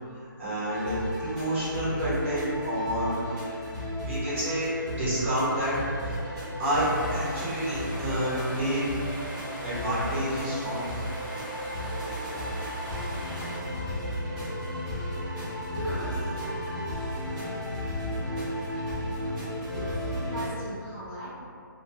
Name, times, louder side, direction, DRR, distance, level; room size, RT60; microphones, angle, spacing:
voice 1, 0.4-3.6 4.0-4.7 5.0-5.7 6.0-6.9 7.1-8.8 9.6-10.8, right 1 dB, 35° right, -10 dB, 1.0 m, -29 dB
sound 1, 0.7-20.5, equal, 5° right, 0.9 m, -34 dB
sound 2, 6.6-13.6, equal, 75° right, 0.9 m, -41 dB
voice 2, 15.7-16.3 19.7-21.3, right 1 dB, 20° left, -13 dB, 0.6 m, -38 dB
2.4 x 2.2 x 2.8 m, 2.3 s
hypercardioid pair, 165°, 11 cm